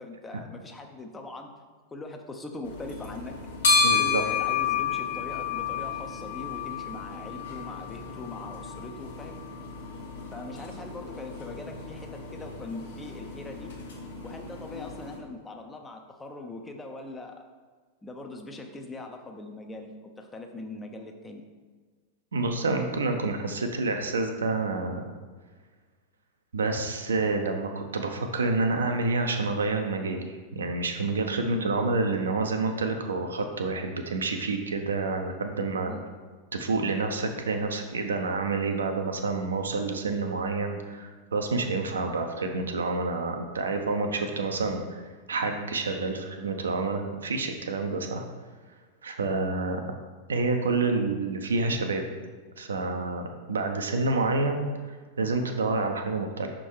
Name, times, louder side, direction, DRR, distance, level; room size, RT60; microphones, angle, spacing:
voice 1, 0.0-1.5 1.9-3.4 3.8-9.4 10.3-13.7 14.2-17.4 18.0-21.4 31.4-31.7 35.9-36.0, left 2 dB, 15° left, 4 dB, 0.6 m, -41 dB
sound 1, 2.6-15.2, left 5 dB, 65° left, 1.3 m, -31 dB
voice 2, 3.8-4.2 22.3-25.1 26.5-35.9 36.5-45.0 45.3-48.2 49.0-49.8 50.3-52.0 52.6-56.5, right 3 dB, 70° right, 5 dB, 0.6 m, -28 dB
6.0 x 3.7 x 4.6 m, 1.5 s
figure-of-eight pair, 90°, 0 cm